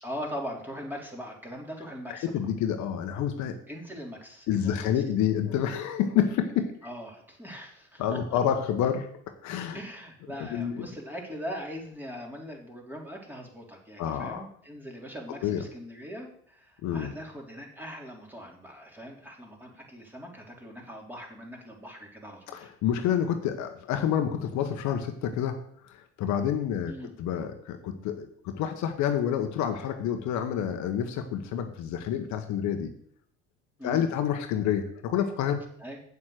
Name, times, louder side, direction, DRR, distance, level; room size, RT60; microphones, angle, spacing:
voice 1, 0.0-2.4 3.7-5.0 6.8-8.4 9.7-22.7 26.9-27.1 33.8-34.1 35.8-36.0, equal, 5° right, -1 dB, 3.5 m, -41 dB
voice 2, 2.1-3.6 4.5-6.7 8.0-9.1 9.4-9.8 10.4-10.9 14.0-14.5 15.4-15.6 16.8-17.1 22.5-25.6 25.8-26.9 27.2-32.9 33.8-35.6, left 9 dB, 60° left, 6 dB, 1.3 m, -28 dB
8.5 x 7.3 x 6.5 m, 0.65 s
hypercardioid pair, 70°, 33 cm